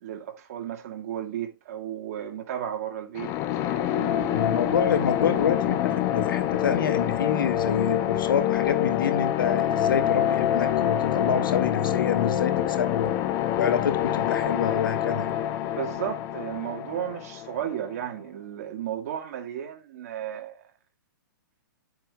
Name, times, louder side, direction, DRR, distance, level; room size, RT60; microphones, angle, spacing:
voice 1, 0.0-3.3 3.6-4.6 15.7-20.6, right 10 dB, 45° right, 2.0 m, -34 dB
sound 1, 3.1-17.9, left 11 dB, 25° left, 0.9 m, -26 dB
voice 2, 4.3-13.2 13.6-15.4, left 7 dB, 80° left, 2.3 m, -27 dB
10.0 x 7.7 x 2.4 m
hypercardioid pair, 160°, 11 cm